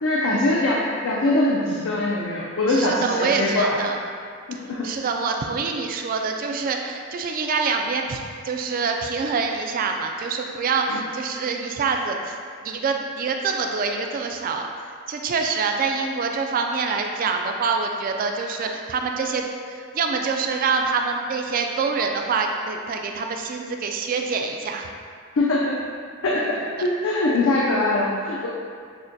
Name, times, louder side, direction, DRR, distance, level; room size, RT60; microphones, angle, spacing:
voice 1, 0.0-3.8 4.5-4.8 25.3-25.8 26.2-28.5, left 2 dB, 80° left, -5 dB, 0.4 m, -22 dB
voice 2, 2.7-4.0 4.8-12.3 12.6-14.7 15.1-19.5 19.9-24.9, right 4 dB, 45° right, 3 dB, 0.3 m, -25 dB
6.1 x 2.2 x 2.7 m, 2.2 s
head